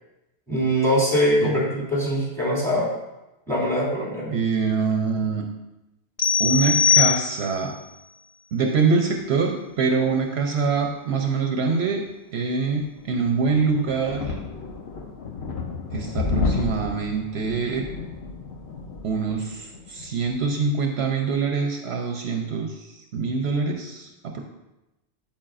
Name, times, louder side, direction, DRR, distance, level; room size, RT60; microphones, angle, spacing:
voice 1, 0.5-2.9 3.5-4.4, equal, ahead, -6 dB, 2.9 m, -22 dB
voice 2, 4.3-5.5 6.4-7.7 8.5-12.0 12.3-14.4 15.9-17.9 19.0-24.4, right 4 dB, 70° right, 2 dB, 0.9 m, -24 dB
sound 1, 6.2-7.7, left 7 dB, 35° left, 0.8 m, -21 dB
sound 2, 13.0-20.5, left 4 dB, 65° left, 1.1 m, -31 dB
8.7 x 7.7 x 2.5 m, 0.98 s
omnidirectional pair, 1.2 m